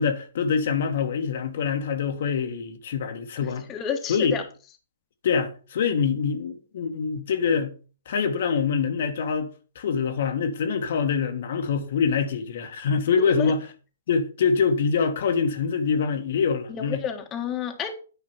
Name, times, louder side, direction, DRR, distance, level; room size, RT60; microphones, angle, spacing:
voice 1, 0.0-3.7 4.1-4.4 5.2-7.7 8.1-9.5 9.7-13.7 14.1-17.0, left 6 dB, 60° left, 1.4 m, -25 dB
voice 2, 3.7-4.4 13.2-13.5 16.7-17.9, left 8 dB, 20° left, 1.5 m, -30 dB
9.4 x 5.0 x 5.7 m
hypercardioid pair, 125°, 0 cm